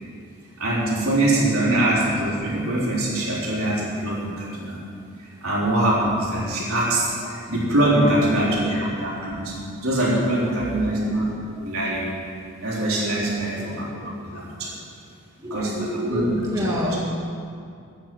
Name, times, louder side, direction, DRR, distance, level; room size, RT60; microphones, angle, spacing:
voice 1, 0.6-4.8 5.4-9.5 9.8-11.3 11.6-12.1 12.6-14.7 15.5-16.2, right 1 dB, 75° right, -6 dB, 4.0 m, -23 dB
voice 2, 7.1-7.5 7.8-8.8 10.3-11.0 13.3-13.8 15.3-17.0, equal, 15° right, -5 dB, 1.9 m, -32 dB
11.5 x 9.7 x 7.8 m, 2.3 s
head